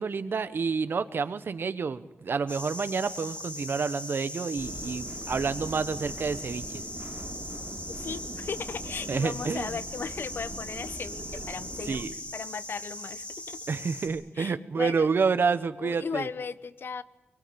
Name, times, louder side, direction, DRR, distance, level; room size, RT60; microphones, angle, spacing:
voice 1, 0.0-6.8 9.1-9.8 11.9-12.1 13.7-16.3, right 5 dB, 70° right, 13 dB, 1.3 m, -29 dB
sound 1, 2.5-14.1, left 1 dB, 30° left, 6.4 m, -40 dB
sound 2, 4.6-12.0, right 2 dB, 35° right, 3.5 m, -42 dB
voice 2, 7.9-13.6 14.3-15.1 15.8-17.0, left 5 dB, 75° left, 15 dB, 1.0 m, -37 dB
24.0 x 23.0 x 8.9 m, 0.93 s
wide cardioid pair, 115°, 4 cm